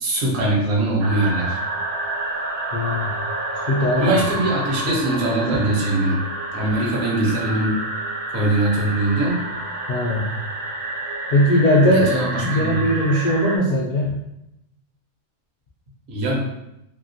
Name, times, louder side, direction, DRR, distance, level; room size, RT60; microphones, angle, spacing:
voice 1, 0.0-1.6 4.0-6.2 6.5-7.8 8.3-9.4 11.9-12.9 16.1-16.4, right 2 dB, 70° right, -2 dB, 1.2 m, -22 dB
sound 1, 1.0-13.6, right 2 dB, 90° right, 1.1 m, -29 dB
voice 2, 2.7-3.1 3.7-4.2 4.8-5.1 9.9-10.3 11.3-12.1 12.4-14.2, left 1 dB, 90° left, -4 dB, 0.4 m, -19 dB
2.8 x 2.7 x 2.6 m, 0.85 s
omnidirectional pair, 1.4 m